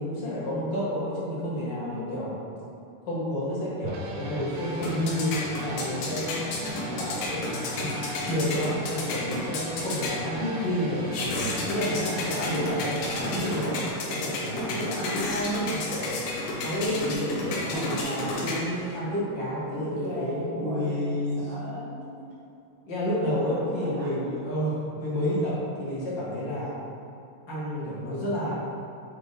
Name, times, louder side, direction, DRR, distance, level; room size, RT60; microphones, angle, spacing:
voice 1, 0.0-2.3 3.0-6.4 6.9-16.2 16.6-21.4 22.8-26.7 27.5-28.5, equal, 50° left, -8 dB, 1.5 m, -30 dB
voice 2, 1.5-2.4 6.5-7.0 12.1-12.8 14.4-15.4 17.6-18.4 19.7-21.2 21.5-22.3 23.1-24.5, equal, 55° right, -10 dB, 2.6 m, -39 dB
sound 1, 3.8-13.7, right 1 dB, 80° right, 2.3 m, -38 dB
sound 2, 4.5-19.0, left 2 dB, 90° left, 2.7 m, -33 dB
8.4 x 4.4 x 3.3 m, 2.7 s
omnidirectional pair, 3.8 m